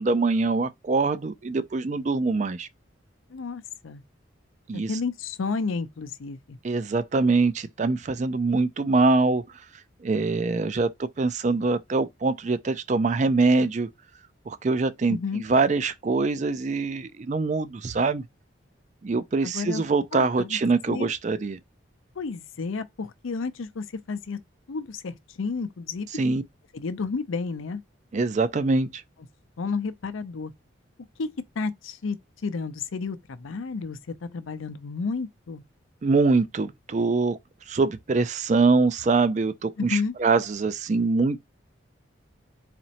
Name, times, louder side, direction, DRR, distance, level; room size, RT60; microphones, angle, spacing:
voice 1, 0.0-2.7 4.7-5.0 6.6-9.4 10.0-13.9 14.5-18.2 19.0-21.6 26.1-26.4 28.1-29.0 36.0-37.4 37.7-41.4, right 3 dB, 35° right, 0.4 m, -24 dB
voice 2, 3.3-4.0 4.9-6.6 15.1-15.4 19.4-19.8 20.1-20.6 20.9-21.1 22.2-24.4 24.7-26.1 26.7-27.8 29.6-30.5 31.2-31.3 31.6-34.0 34.3-35.6 39.8-40.1, left 4 dB, 85° left, 0.5 m, -31 dB
4.2 x 3.0 x 2.8 m
head